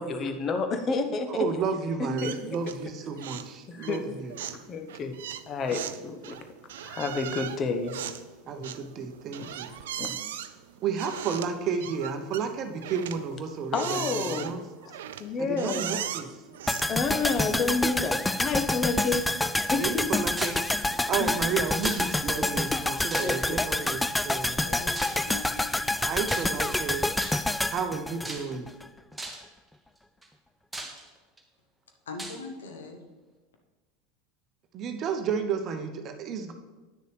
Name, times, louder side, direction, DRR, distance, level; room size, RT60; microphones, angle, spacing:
voice 1, 0.0-1.4 2.2-2.3 3.7-4.0 4.4-5.1 5.5-6.3 6.8-8.0 8.5-8.7 9.4-9.5 10.0-10.2 13.7-14.6 14.8-14.9 15.2-16.1 16.9-19.3 19.7-20.2 21.2-21.3 23.2-23.6, left 4 dB, 30° left, 7 dB, 0.9 m, -30 dB
voice 2, 1.3-4.3 8.5-9.7 10.8-14.6 15.4-16.4 19.8-20.6 21.1-24.6 26.0-27.1 27.7-28.7 34.7-36.5, right 6 dB, 40° right, 7 dB, 0.8 m, -32 dB
sound 1, 2.2-2.9 3.2-3.5 3.8-17.6, right 10 dB, 65° right, 0.4 m, -38 dB
sound 2, 16.7-28.9 29.1-29.2, left 2 dB, 5° left, 0.3 m, -28 dB
sound 3, 20.4-20.7 21.8-22.3 23.1-23.6 24.9-25.3 26.2-26.7 27.2-27.6 28.2-28.7 29.2-29.5 30.2-30.3 30.7-31.4 32.2-32.4, right 2 dB, 10° right, 1.2 m, -38 dB
voice 3, 24.6-26.0 32.1-33.0, left 3 dB, 70° left, 3 dB, 1.1 m, -41 dB
9.5 x 6.6 x 3.3 m, 1.2 s
figure-of-eight pair, 80°, 0 cm